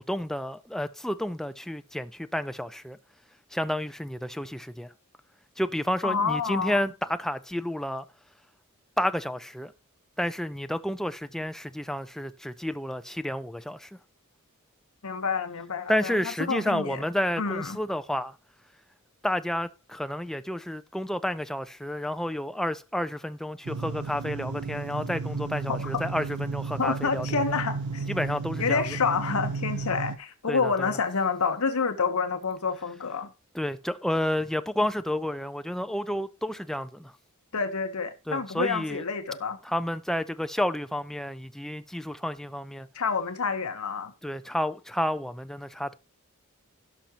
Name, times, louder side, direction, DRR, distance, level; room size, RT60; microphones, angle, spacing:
voice 1, 0.0-3.0 3.5-4.9 5.6-8.1 9.0-9.7 10.2-14.0 15.9-18.4 19.2-27.6 28.1-28.8 30.5-30.9 33.5-37.1 38.3-39.0 39.6-42.9 44.2-45.9, left 1 dB, ahead, 0.5 m, -30 dB
voice 2, 6.0-6.8 15.0-17.0 17.4-17.8 25.7-25.8 26.8-28.1 28.6-33.3 37.5-39.6 42.9-44.1, left 5 dB, 80° left, 1.0 m, -28 dB
sound 1, 23.6-30.2, right 4 dB, 80° right, 0.6 m, -33 dB
16.5 x 5.8 x 2.9 m
head